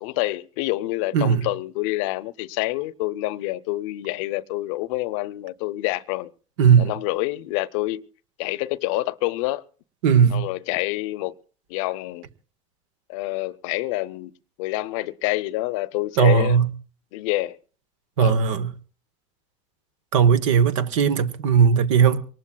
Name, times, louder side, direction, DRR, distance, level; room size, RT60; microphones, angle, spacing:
voice 1, 0.0-6.3 6.8-8.1 8.4-9.6 10.3-11.3 11.7-12.2 13.1-14.3 14.6-16.6 17.1-17.6 18.2-18.4, left 18 dB, 80° left, 0.6 m, -27 dB
voice 2, 1.1-1.5 6.6-6.9 10.0-10.5 16.2-16.7 18.2-18.7 20.1-22.2, right 7 dB, 85° right, 0.9 m, -18 dB
24.0 x 19.0 x 2.3 m
hypercardioid pair, 80°, 16 cm